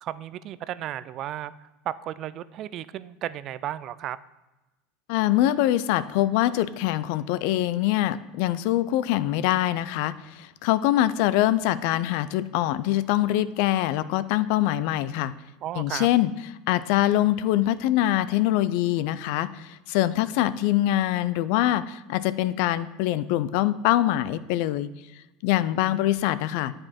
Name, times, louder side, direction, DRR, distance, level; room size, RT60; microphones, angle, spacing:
voice 1, 0.0-4.2 15.6-16.1, right 12 dB, 50° right, 16 dB, 0.3 m, -34 dB
voice 2, 5.1-15.3 15.8-16.3 16.7-24.9 25.4-26.7, left 14 dB, 70° left, 16 dB, 0.3 m, -24 dB
8.4 x 5.1 x 4.2 m, 1.1 s
supercardioid pair, 110°, 0 cm